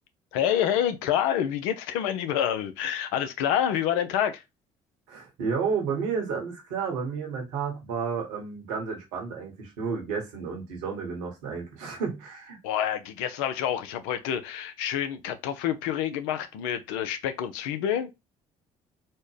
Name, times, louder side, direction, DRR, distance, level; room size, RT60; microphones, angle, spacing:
voice 1, 0.3-4.4 12.6-18.1, left 10 dB, 80° left, 0.6 m, -27 dB
voice 2, 5.1-12.6, right 5 dB, 80° right, 1.4 m, -31 dB
4.3 x 2.2 x 3.2 m
hypercardioid pair, 60°, 16 cm